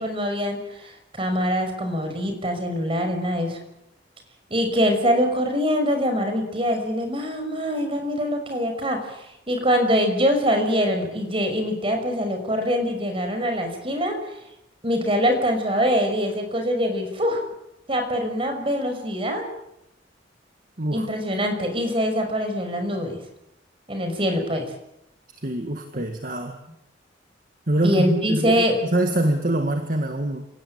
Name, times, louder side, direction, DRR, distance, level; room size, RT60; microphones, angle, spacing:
voice 1, 0.0-3.6 4.5-14.2 14.8-17.4 17.9-19.5 20.9-23.2 23.9-24.7 27.8-28.8, equal, 30° right, 5 dB, 6.0 m, -24 dB
voice 2, 25.4-26.6 27.7-28.6 28.9-30.4, right 1 dB, 45° right, 5 dB, 2.0 m, -24 dB
28.0 x 17.5 x 8.9 m, 0.82 s
head